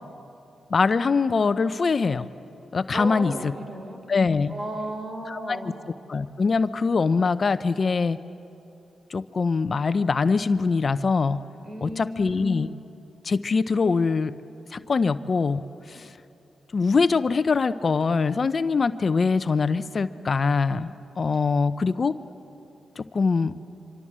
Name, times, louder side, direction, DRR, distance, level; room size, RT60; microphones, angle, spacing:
voice 1, 0.7-2.3 2.7-3.5 4.1-4.5 5.3-5.7 6.1-8.2 9.1-11.4 11.8-12.7 13.2-14.3 14.7-16.1 16.7-22.2 23.0-23.5, left 4 dB, 50° left, 13 dB, 0.7 m, -23 dB
voice 2, 2.9-4.0 4.5-5.7 11.6-12.5, right 1 dB, 40° right, 5 dB, 4.1 m, -34 dB
25.5 x 25.0 x 7.5 m, 2.9 s
supercardioid pair, 50°, 0 cm